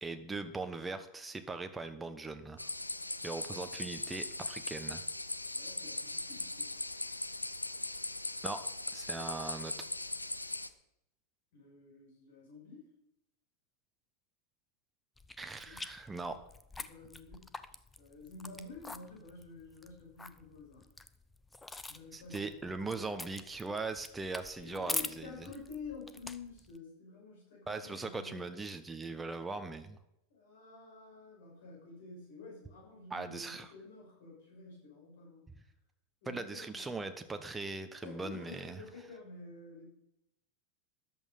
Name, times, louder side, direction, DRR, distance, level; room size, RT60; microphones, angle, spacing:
voice 1, 0.0-2.6 3.2-5.0 8.4-8.6 8.9-9.7 15.4-16.4 22.1-25.3 27.7-30.0 33.1-33.7 36.3-38.8, right 3 dB, 10° right, 7 dB, 1.2 m, -40 dB
sound 1, 2.6-10.7, left 2 dB, 85° left, 0.7 m, -39 dB
voice 2, 5.5-6.7 11.5-12.9 15.6-15.8 16.8-17.5 18.0-20.9 21.9-23.0 24.6-28.6 30.3-35.4 36.2-37.0 38.0-39.9, left 4 dB, 55° left, -2 dB, 6.8 m, -50 dB
sound 2, 15.2-26.8, left 2 dB, 10° left, 0.8 m, -45 dB
14.0 x 11.0 x 5.5 m, 0.82 s
figure-of-eight pair, 90°, 0 cm